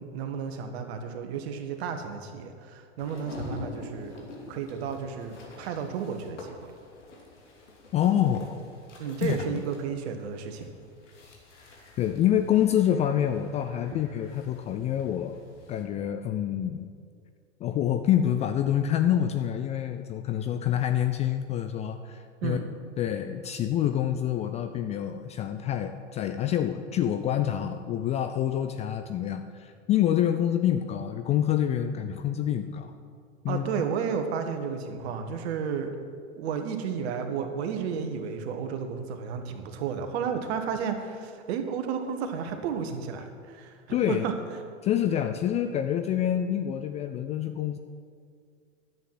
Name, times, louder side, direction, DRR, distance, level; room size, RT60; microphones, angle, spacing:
voice 1, 0.0-6.7 9.0-10.7 13.9-14.0 22.4-22.7 33.5-35.9 36.4-44.3, right 6 dB, 60° right, 6 dB, 1.6 m, -32 dB
sound 1, 3.0-15.8, left 3 dB, 75° left, 2.9 m, -46 dB
voice 2, 7.9-8.5 9.2-9.4 12.0-15.4 15.7-16.9 17.6-22.6 23.0-32.9 33.4-33.6 43.9-44.2 44.8-47.8, left 10 dB, 20° left, 8 dB, 0.3 m, -27 dB
11.0 x 8.0 x 7.6 m, 2.2 s
hypercardioid pair, 95°, 37 cm